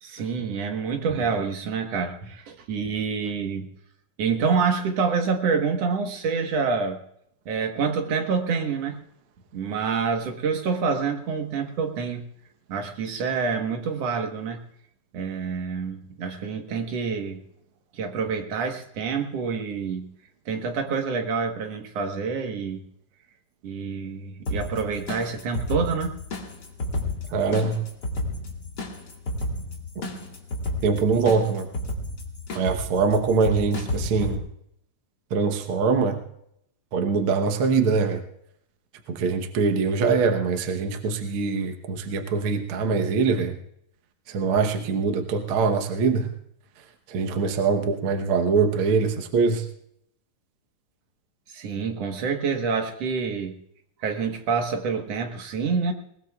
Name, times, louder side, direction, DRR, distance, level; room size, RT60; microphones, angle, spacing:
voice 1, 0.0-3.7 4.2-7.0 7.5-9.0 9.5-12.3 12.7-14.6 15.1-17.4 17.9-20.1 20.5-22.8 23.6-26.2 51.5-53.6 54.0-55.9, right 5 dB, 55° right, 4 dB, 2.0 m, -27 dB
sound 1, 24.4-34.3, left 1 dB, 40° left, 1.9 m, -32 dB
voice 2, 27.3-27.8 30.8-31.7 32.5-34.5 35.3-36.2 36.9-38.2 39.1-43.6 44.3-46.3 47.1-49.6, right 4 dB, 75° right, 5 dB, 1.2 m, -23 dB
21.0 x 20.0 x 2.4 m, 0.75 s
omnidirectional pair, 4.0 m